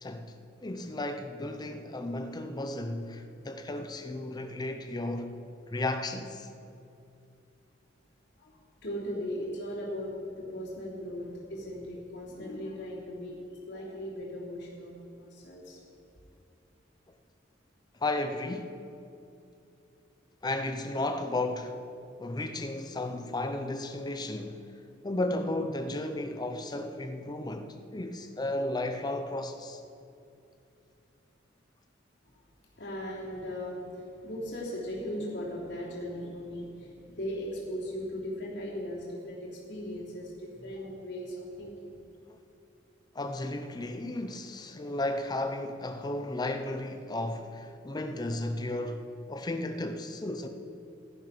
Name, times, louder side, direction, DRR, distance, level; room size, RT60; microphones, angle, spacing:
voice 1, 0.0-5.3 5.7-6.5 18.0-18.8 20.4-21.8 22.2-24.6 25.0-29.8 42.3-42.4 43.1-50.5, left 2 dB, 20° left, 0.6 m, -34 dB
voice 2, 8.4-13.4 13.6-15.8 32.8-42.0, equal, 65° left, 3.1 m, -38 dB
13.0 x 10.0 x 6.0 m
head